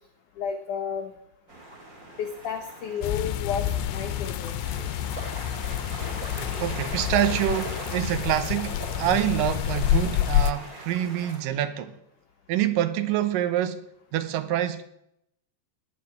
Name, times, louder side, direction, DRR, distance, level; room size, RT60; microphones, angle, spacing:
voice 1, 0.4-1.1 2.2-4.5, left 7 dB, 65° left, 2.0 m, -32 dB
sound 1, 1.5-11.4, right 1 dB, 20° right, 3.6 m, -40 dB
sound 2, 3.0-10.5, left 12 dB, 85° left, 2.8 m, -28 dB
voice 2, 6.6-12.0 12.5-13.8 14.1-14.8, right 12 dB, 75° right, 2.1 m, -26 dB
19.0 x 6.6 x 9.8 m
omnidirectional pair, 5.0 m